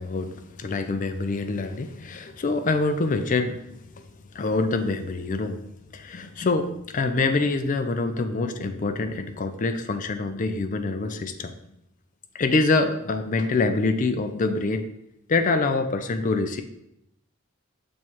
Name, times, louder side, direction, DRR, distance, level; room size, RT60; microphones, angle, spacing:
voice 1, 0.0-3.6 4.0-4.1 4.3-5.6 5.9-11.5 12.3-14.9 15.3-16.6, left 3 dB, 40° left, 8 dB, 0.4 m, -25 dB
7.1 x 3.2 x 4.5 m, 0.81 s
head